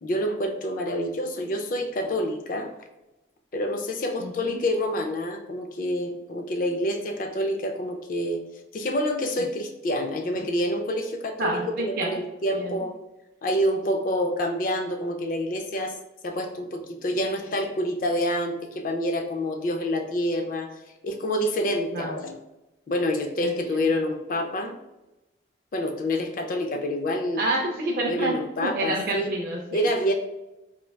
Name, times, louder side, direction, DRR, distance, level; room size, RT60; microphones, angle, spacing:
voice 1, 0.0-2.8 3.5-8.4 8.7-13.0 13.4-15.9 16.2-20.7 21.0-22.4 22.9-24.8 25.7-27.4 28.1-29.3 29.7-30.1, equal, 45° left, 5 dB, 0.4 m, -27 dB
voice 2, 4.2-4.6 11.4-12.2 12.5-12.8 21.9-22.2 23.4-23.8 27.4-28.3 28.6-29.9, right 2 dB, 50° right, 0 dB, 0.3 m, -28 dB
4.3 x 2.2 x 2.2 m, 1.0 s
head